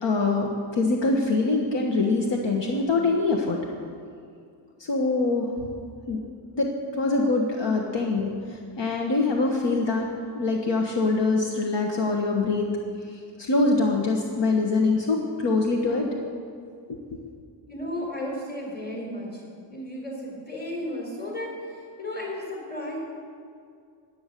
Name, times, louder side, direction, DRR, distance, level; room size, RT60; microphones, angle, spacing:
voice 1, 0.0-3.6 4.8-5.5 6.1-6.2 6.5-10.1 10.3-12.7 13.4-16.1, left 3 dB, 65° left, 1 dB, 1.4 m, -24 dB
voice 2, 17.7-19.4 19.7-23.0, left 1 dB, 20° left, -1 dB, 4.3 m, -34 dB
16.0 x 10.0 x 6.7 m, 2.3 s
wide cardioid pair, 170°, 46 cm